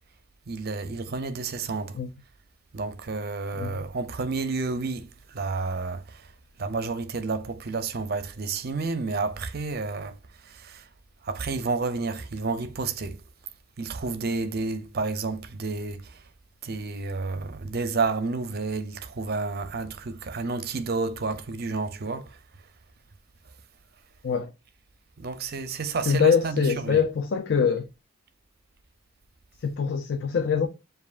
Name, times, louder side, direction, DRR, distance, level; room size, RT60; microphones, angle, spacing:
voice 1, 0.5-1.9 2.7-6.2 6.6-10.1 10.5-10.8 11.2-13.2 13.8-16.1 16.6-22.3 25.2-27.0, right 4 dB, 45° right, 0.5 m, -30 dB
voice 2, 26.1-27.9 29.6-30.7, left 6 dB, 55° left, 0.4 m, -24 dB
7.1 x 2.5 x 2.4 m
head